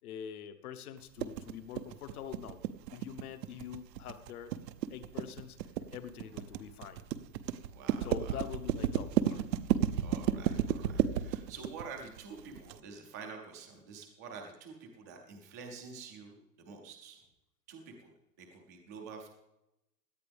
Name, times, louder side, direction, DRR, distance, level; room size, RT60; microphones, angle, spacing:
voice 1, 0.0-2.6 2.9-4.5 4.9-5.6 5.9-7.0 8.0-9.4, left 9 dB, 60° left, 10 dB, 1.1 m, -44 dB
sound 1, 1.2-12.8, right 10 dB, 80° right, 0.9 m, -32 dB
voice 2, 7.7-8.4 10.0-17.2 17.7-19.3, right 5 dB, 10° right, 2 dB, 0.4 m, -48 dB
17.0 x 11.0 x 3.5 m, 0.91 s
supercardioid pair, 170°, 49 cm